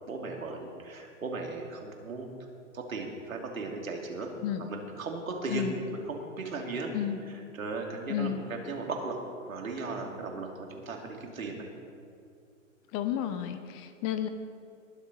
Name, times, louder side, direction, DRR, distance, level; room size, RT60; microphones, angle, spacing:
voice 1, 0.1-2.3 2.7-4.3 4.7-6.9 7.5-9.2 9.5-11.7, right 3 dB, 80° right, 1 dB, 2.7 m, -36 dB
voice 2, 8.1-8.4 12.9-14.3, left 10 dB, 25° left, 10 dB, 0.6 m, -32 dB
20.5 x 7.3 x 5.4 m, 2.4 s
hypercardioid pair, 125°, 40 cm